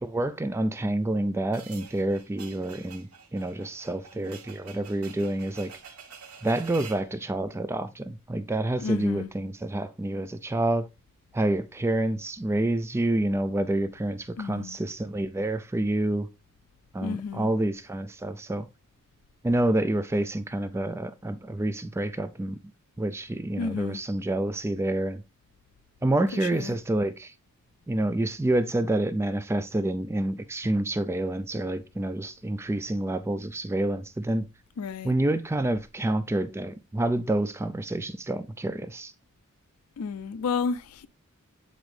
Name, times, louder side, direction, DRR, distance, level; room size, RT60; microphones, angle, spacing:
voice 1, 0.0-5.7 6.4-10.9 11.3-16.3 16.9-18.7 19.4-22.6 23.0-25.2 26.0-27.3 27.9-34.5 35.0-39.1, right 1 dB, 10° right, 0.3 m, -28 dB
sound 1, 1.5-7.1, right 6 dB, 90° right, 1.2 m, -47 dB
voice 2, 8.8-9.3 14.4-14.8 17.0-17.5 23.6-24.0 26.3-26.8 34.8-35.1 40.0-41.1, left 5 dB, 85° left, 0.4 m, -32 dB
8.1 x 3.8 x 3.1 m
head